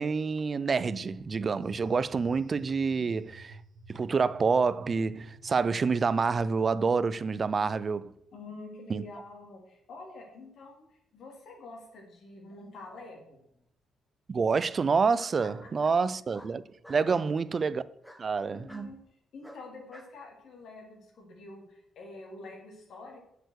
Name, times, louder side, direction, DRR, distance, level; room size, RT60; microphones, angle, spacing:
voice 1, 0.0-3.6 3.9-8.1 8.9-9.0 14.3-16.6 16.9-17.8 18.2-18.9, right 5 dB, 40° right, 0.5 m, -27 dB
sound 1, 1.6-6.7, right 3 dB, 65° right, 1.3 m, -52 dB
voice 2, 8.3-13.4 15.4-15.7 17.0-17.2 18.4-19.0 19.3-23.2, left 2 dB, 65° left, 3.4 m, -47 dB
Bark, 13.0-13.6 15.1-15.4 16.3-17.1 18.0-18.3 18.7-18.9 19.4-20.1, equal, 5° left, 1.3 m, -52 dB
8.0 x 6.8 x 6.6 m
cardioid pair, 90°, 0 cm